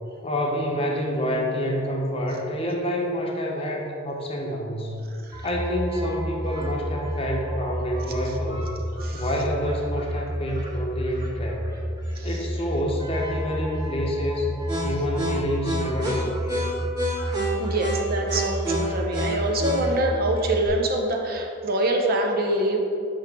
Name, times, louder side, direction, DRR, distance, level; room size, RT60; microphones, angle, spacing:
voice 1, 0.2-5.0 5.4-8.7 9.1-11.7 12.2-14.5 14.8-16.7, equal, 30° left, 0 dB, 0.8 m, -28 dB
voice 2, 5.1-5.5 6.6-6.7 9.0-9.2 12.1-12.4 17.6-22.8, right 1 dB, 45° right, 1 dB, 0.8 m, -25 dB
sound 1, 5.3-20.7, right 1 dB, 20° right, 1.7 m, -29 dB
5.6 x 4.5 x 6.0 m, 2.6 s
head